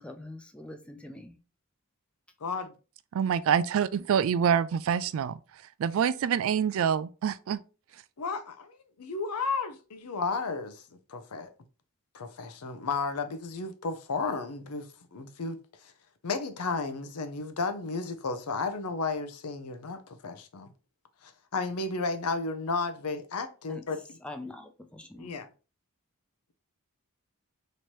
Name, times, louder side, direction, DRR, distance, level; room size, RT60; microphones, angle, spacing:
voice 1, 0.0-1.4 23.7-23.8 24.2-25.3, left 2 dB, 5° left, 0.5 m, -43 dB
voice 2, 2.4-2.7 8.2-10.8 11.1-11.5 12.1-15.9 16.2-20.7 21.2-24.2 25.1-25.5, left 4 dB, 85° left, 0.7 m, -33 dB
voice 3, 3.1-5.4 5.8-7.6, right 8 dB, 65° right, 0.3 m, -26 dB
3.1 x 2.8 x 4.4 m
head